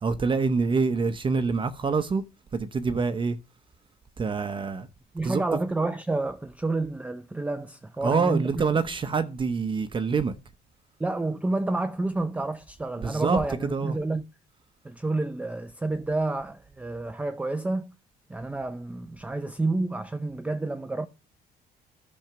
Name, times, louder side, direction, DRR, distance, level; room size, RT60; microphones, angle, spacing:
voice 1, 0.0-2.2 2.5-3.4 4.2-4.9 5.2-5.4 8.0-10.3 13.0-13.4 13.7-14.0, right 4 dB, 30° right, 0.8 m, -26 dB
voice 2, 5.1-8.7 11.0-14.2 14.8-17.9 18.3-21.1, right 2 dB, 10° right, 0.5 m, -29 dB
10.5 x 6.4 x 5.8 m
cardioid pair, 110°, 17 cm